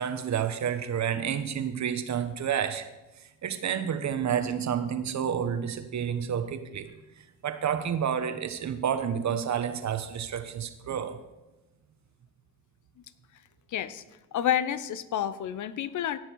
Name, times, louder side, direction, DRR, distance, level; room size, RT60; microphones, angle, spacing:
voice 1, 0.0-2.9 3.2-11.2, right 8 dB, 50° right, 9 dB, 1.2 m, -30 dB
voice 2, 13.7-14.0 14.3-16.2, left 10 dB, 55° left, 15 dB, 0.8 m, -29 dB
16.5 x 6.4 x 4.7 m, 1.0 s
supercardioid pair, 70°, 35 cm